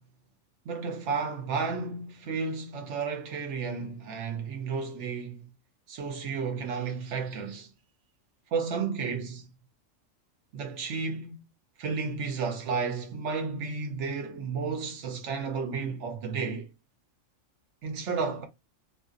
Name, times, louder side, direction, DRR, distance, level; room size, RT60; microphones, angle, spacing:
voice 1, 0.7-5.5 5.9-7.7 8.5-9.5 10.5-11.4 11.8-16.7 17.8-18.4, right 5 dB, 70° right, 0.9 m, -32 dB
2.5 x 2.2 x 2.4 m
omnidirectional pair, 1.3 m